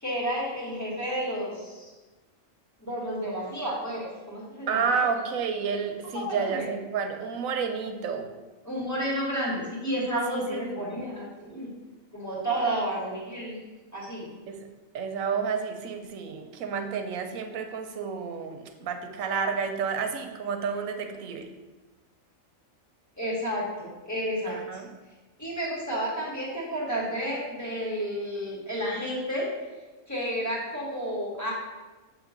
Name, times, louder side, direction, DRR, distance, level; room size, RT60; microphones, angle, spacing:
voice 1, 0.0-1.9 2.8-5.0 6.1-6.7 8.7-11.7 12.1-13.6 13.9-14.3 23.2-24.6 25.4-29.5 30.1-31.5, equal, 15° left, -6 dB, 1.8 m, -31 dB
voice 2, 4.7-8.3 10.3-11.0 14.5-14.7 14.9-21.5 24.5-24.9, right 6 dB, 80° right, 6 dB, 1.1 m, -30 dB
7.4 x 3.1 x 5.0 m, 1.2 s
omnidirectional pair, 1.4 m